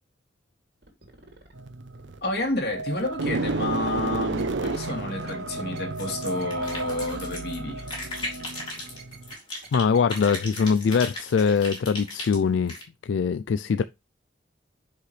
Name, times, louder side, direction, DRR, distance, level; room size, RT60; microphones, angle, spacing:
sound 1, 0.8-1.5 1.9-3.9 4.4-4.5 4.8-4.9 5.3-5.4 5.7-5.9 6.4-7.1 7.8-7.9 8.3-9.4 9.6-9.7 9.9-10.2 10.7-10.8 11.2-11.3 11.7-11.8, right 4 dB, 55° right, 2.9 m, -49 dB
sound 2, 1.6-9.3, right 2 dB, 80° right, 0.8 m, -32 dB
voice 1, 2.2-7.9, left 2 dB, 55° left, 2.5 m, -30 dB
sound 3, 6.0-7.6 7.9-9.8 10.1-12.8, left 2 dB, 25° left, 4.0 m, -36 dB
voice 2, 9.7-12.7 13.0-13.8, left 5 dB, 80° left, 0.4 m, -22 dB
9.9 x 5.5 x 3.2 m
head